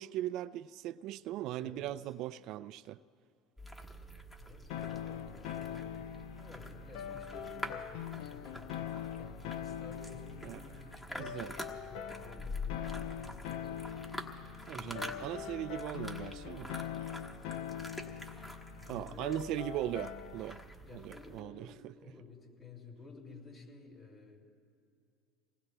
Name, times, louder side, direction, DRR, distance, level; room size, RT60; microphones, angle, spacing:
voice 1, 0.0-3.0 10.4-10.6 11.2-11.5 14.7-16.7 18.9-20.6 20.9-21.7, right 13 dB, 65° right, 0.3 m, -39 dB
voice 2, 1.6-2.1 4.4-6.1 6.3-14.5 14.7-15.2 18.7-19.8 20.8-24.4, left 4 dB, 40° left, 4.6 m, -53 dB
sound 1, 3.6-21.4, equal, 10° left, 1.4 m, -46 dB
sound 2, 4.7-20.6, left 10 dB, 75° left, 0.5 m, -43 dB
29.0 x 19.0 x 2.2 m
supercardioid pair, 95°, 0 cm